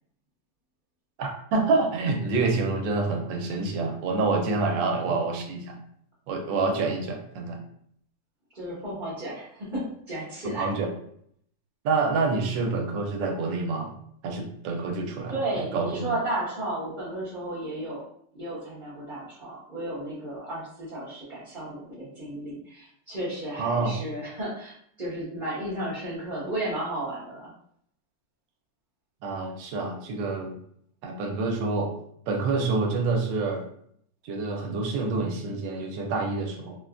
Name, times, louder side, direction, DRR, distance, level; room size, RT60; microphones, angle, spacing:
voice 1, 1.2-5.8 6.3-7.6 10.6-10.9 11.8-13.9 14.2-16.1 23.6-23.9 29.2-30.6 31.0-31.9 32.3-33.6 34.2-36.8, right 3 dB, 90° right, 3 dB, 1.3 m, -27 dB
voice 2, 8.5-10.7 15.3-18.0 18.3-27.5, right 1 dB, 40° right, -11 dB, 0.7 m, -33 dB
3.6 x 2.2 x 2.4 m, 0.67 s
omnidirectional pair, 2.0 m